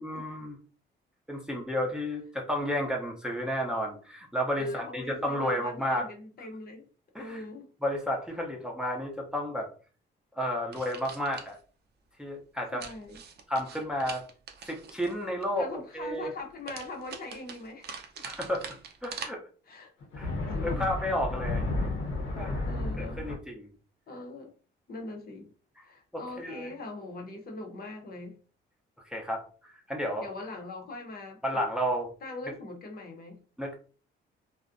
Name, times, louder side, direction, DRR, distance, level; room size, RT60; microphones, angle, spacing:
voice 1, 0.0-0.6 1.3-6.0 7.1-7.4 7.8-9.7 10.4-11.6 12.2-12.8 13.5-14.2 14.7-15.7 15.9-16.3 18.2-18.7 19.0-19.4 20.2-20.3 20.6-21.9 22.4-22.6 23.0-23.7 25.8-25.9 26.1-26.7 29.1-30.3 31.4-32.1 33.6-33.7, equal, 5° right, 0.6 m, -32 dB
voice 2, 4.6-6.9 7.2-7.7 12.7-13.2 15.6-17.9 19.7-19.9 20.5-20.9 22.7-23.2 24.1-24.5 24.9-25.5 25.8-28.4 30.2-31.6 32.2-33.4, left 2 dB, 50° left, 0.7 m, -41 dB
sound 1, 10.7-11.6 12.8-15.5 16.7-19.3, right 6 dB, 55° right, 0.5 m, -43 dB
sound 2, 20.0-23.3, left 2 dB, 80° left, 0.8 m, -32 dB
2.5 x 2.0 x 2.5 m
cardioid pair, 90°, 20 cm